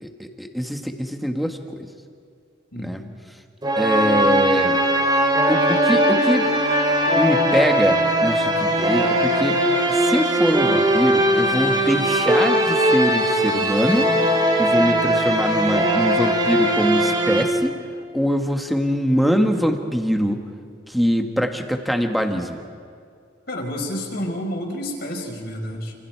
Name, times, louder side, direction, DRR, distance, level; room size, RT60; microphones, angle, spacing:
voice 1, 0.0-1.9 2.8-3.0 3.8-4.8 5.5-6.5 7.1-9.6 9.9-14.1 14.6-17.8 18.1-20.4 20.9-22.6, equal, ahead, 4 dB, 1.6 m, -23 dB
sound 1, 3.6-17.4, right 1 dB, 20° right, 2.7 m, -19 dB
voice 2, 23.5-25.9, equal, 55° left, -1 dB, 5.4 m, -29 dB
29.5 x 28.0 x 4.7 m, 2.3 s
head